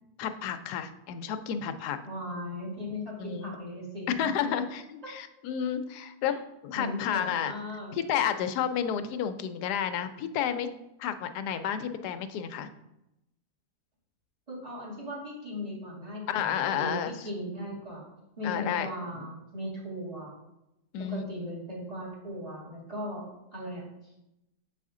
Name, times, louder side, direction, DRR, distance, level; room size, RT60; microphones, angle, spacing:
voice 1, 0.2-2.0 3.2-3.5 4.2-7.5 7.9-10.7 11.0-12.7 16.3-17.1 18.4-18.9 20.9-21.2, left 9 dB, 85° left, 9 dB, 1.1 m, -31 dB
voice 2, 2.0-4.3 6.3-6.4 6.7-7.9 14.5-18.1 18.4-20.3 21.0-23.2 23.5-24.1, left 1 dB, 25° right, -5 dB, 2.1 m, -38 dB
7.9 x 4.2 x 3.7 m, 0.88 s
omnidirectional pair, 1.7 m